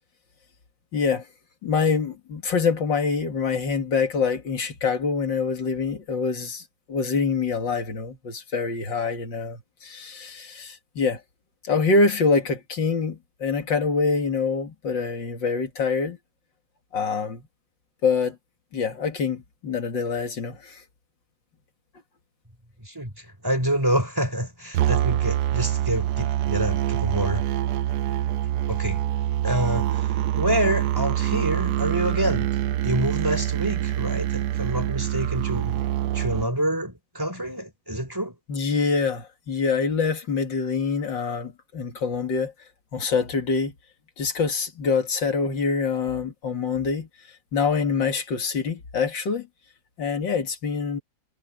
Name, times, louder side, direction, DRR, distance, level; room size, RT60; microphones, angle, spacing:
voice 1, 0.9-1.3 1.6-11.2 11.6-16.2 16.9-17.4 18.0-18.4 18.7-20.8 38.5-42.5 42.9-43.7 44.2-47.1 47.5-49.5 50.0-51.0, left 5 dB, 85° left, 2.9 m, -25 dB
voice 2, 22.8-27.5 28.7-29.0 29.4-32.5 32.8-35.8 36.1-38.3, right 1 dB, 10° right, 3.7 m, -27 dB
sound 1, 24.7-36.5, right 12 dB, 70° right, 1.0 m, -25 dB
omnidirectional pair, 2.0 m